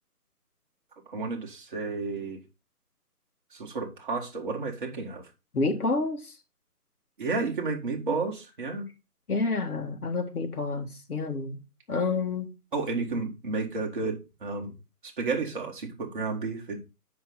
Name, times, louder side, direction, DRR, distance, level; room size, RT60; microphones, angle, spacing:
voice 1, 1.1-2.4 3.5-5.2 7.2-8.8 12.7-14.7 15.0-16.8, right 4 dB, 30° right, 1.7 m, -31 dB
voice 2, 5.5-6.2 9.3-11.6 11.9-12.5, left 3 dB, 65° left, 2.1 m, -28 dB
7.5 x 5.8 x 3.8 m
figure-of-eight pair, 165°, 47 cm